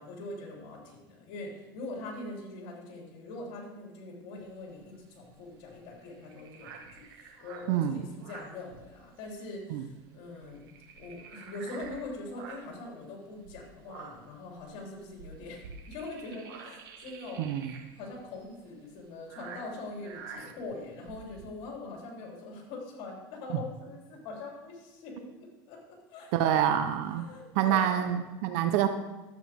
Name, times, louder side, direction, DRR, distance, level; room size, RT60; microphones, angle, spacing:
voice 1, 0.0-10.7 11.0-17.5 18.0-26.7 27.1-28.2, left 2 dB, 60° left, -1 dB, 3.5 m, -43 dB
sound 1, 4.4-9.3 9.6-9.8 10.1-12.8 13.3-21.4, right 5 dB, 80° right, 1.5 m, -49 dB
voice 2, 7.7-8.1 9.7-9.8 17.4-17.7 26.3-27.3 27.6-28.9, right 10 dB, 65° right, 9 dB, 0.7 m, -26 dB
12.5 x 8.2 x 3.6 m, 1.1 s
supercardioid pair, 120°, 12 cm